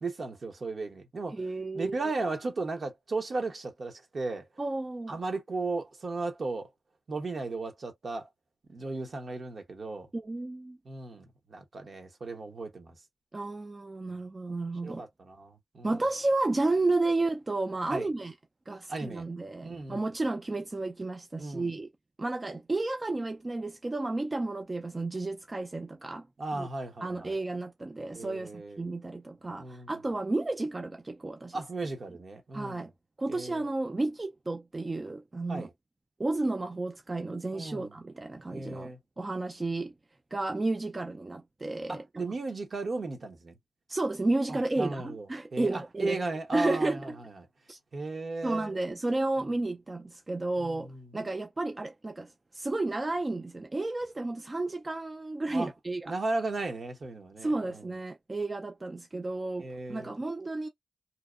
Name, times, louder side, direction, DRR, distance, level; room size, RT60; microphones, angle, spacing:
voice 1, 0.0-1.4 1.7-4.5 5.1-6.7 7.1-8.3 8.7-10.1 10.8-13.0 14.1-14.2 14.8-16.0 17.9-18.1 18.9-19.2 19.6-20.1 21.4-21.7 26.4-27.3 28.1-28.8 29.6-29.9 31.5-32.8 33.3-33.6 35.5-35.7 37.5-37.9 38.5-39.0 41.9-43.6 44.5-45.3 45.5-47.5 47.9-48.7 50.6-51.1 55.5-55.7 56.1-57.9 59.6-60.1, right 3 dB, 65° right, 0.9 m, -35 dB
voice 2, 1.3-2.1 4.6-5.2 10.1-10.8 13.3-15.0 15.8-18.3 18.7-21.9 22.2-26.3 26.5-26.7 27.0-31.6 32.5-32.9 33.2-35.7 36.2-39.9 40.3-42.3 43.9-46.2 46.5-47.2 47.7-47.8 48.4-56.1 57.4-60.7, right 2 dB, 40° right, 0.4 m, -32 dB
2.7 x 2.0 x 2.3 m
cardioid pair, 40°, 0 cm